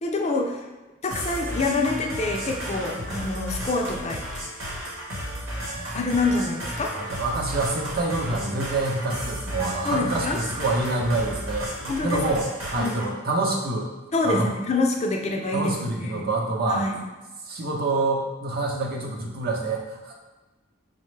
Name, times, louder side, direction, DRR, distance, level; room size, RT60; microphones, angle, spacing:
voice 1, 0.0-0.7 1.0-4.4 5.9-7.2 9.8-10.4 11.9-12.2 12.8-13.0 14.1-16.3 16.7-17.0, left 3 dB, 35° left, 1 dB, 0.4 m, -26 dB
sound 1, 1.1-13.1, equal, 85° right, 1.0 m, -33 dB
voice 2, 6.9-13.9 14.2-14.5 15.5-16.9 17.4-20.1, right 2 dB, 50° right, -1 dB, 0.7 m, -27 dB
4.9 x 2.1 x 3.2 m, 1.2 s
head